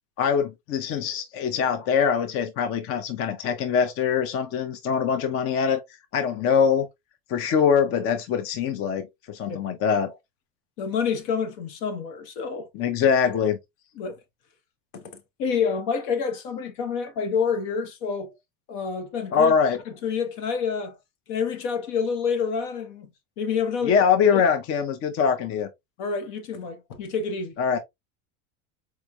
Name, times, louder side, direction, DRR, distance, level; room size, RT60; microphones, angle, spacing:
voice 1, 0.2-5.8 6.1-6.9 7.3-10.2 12.7-13.6 19.3-19.8 23.8-25.7 27.6-27.8, left 7 dB, 35° left, 0.6 m, -23 dB
voice 2, 10.8-12.7 14.0-14.2 14.9-18.4 18.7-19.5 20.0-21.0 21.3-23.1 23.4-24.0 24.3-24.4 26.0-27.6, left 6 dB, 65° left, 1.1 m, -28 dB
4.4 x 3.1 x 2.3 m
supercardioid pair, 135°, 38 cm